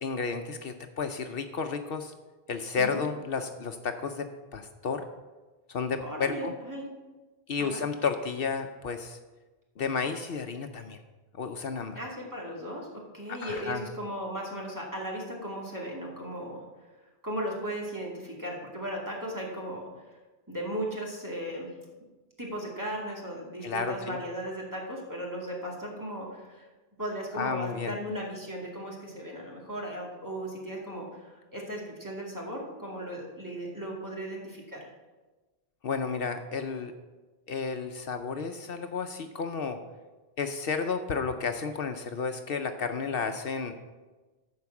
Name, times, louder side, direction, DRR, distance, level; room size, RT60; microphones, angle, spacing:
voice 1, 0.0-2.1 2.5-5.0 5.7-6.5 7.5-9.2 9.8-11.0 11.4-12.0 13.3-13.8 23.6-24.2 27.3-27.9 35.8-36.9 37.5-39.8 40.4-43.9, left 5 dB, 65° left, 6 dB, 0.9 m, -32 dB
voice 2, 6.0-6.9 7.6-7.8 11.9-12.9 13.1-16.6 17.2-19.9 20.5-21.7 22.4-26.7 27.0-34.8, equal, 20° right, -3 dB, 2.3 m, -36 dB
14.0 x 4.8 x 7.0 m, 1.2 s
omnidirectional pair, 1.1 m